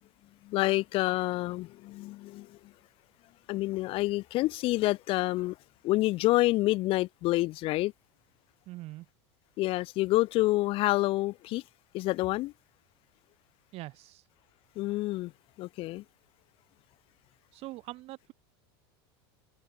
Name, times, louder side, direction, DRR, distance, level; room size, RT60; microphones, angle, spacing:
voice 1, 0.4-2.7 3.5-5.6 5.8-7.9 9.6-11.6 11.9-12.5 14.8-15.3 15.6-16.0, left 18 dB, 45° left, 0.4 m, -28 dB
voice 2, 8.7-9.1 13.7-14.2 17.5-18.3, right 18 dB, 50° right, 2.2 m, -43 dB
supercardioid pair, 125°, 13 cm